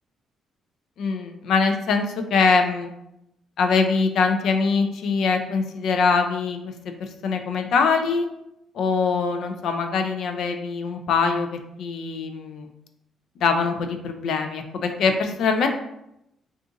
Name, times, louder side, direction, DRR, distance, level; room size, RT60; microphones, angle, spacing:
voice 1, 1.0-2.9 3.6-6.9 7.2-8.3 8.7-12.7 13.4-15.7, left 5 dB, 70° left, 6 dB, 0.4 m, -23 dB
2.5 x 2.4 x 3.8 m, 0.83 s
cardioid pair, 90°, 0 cm